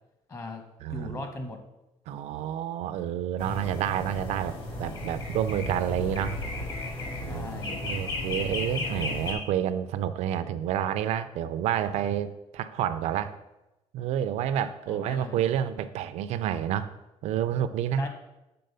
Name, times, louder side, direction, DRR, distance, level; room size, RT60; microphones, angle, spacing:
voice 1, 0.3-0.6 0.9-1.6 7.3-7.8 14.9-15.4 18.0-18.1, left 2 dB, 30° left, 5 dB, 1.2 m, -38 dB
voice 2, 0.8-1.2 2.1-6.4 7.2-13.4 13.9-16.9 17.2-18.1, right 10 dB, 80° right, 11 dB, 0.5 m, -29 dB
sound 1, 3.4-9.3, left 2 dB, 45° left, 2.1 m, -34 dB
7.7 x 4.1 x 6.8 m, 0.96 s
cardioid pair, 170°, 11 cm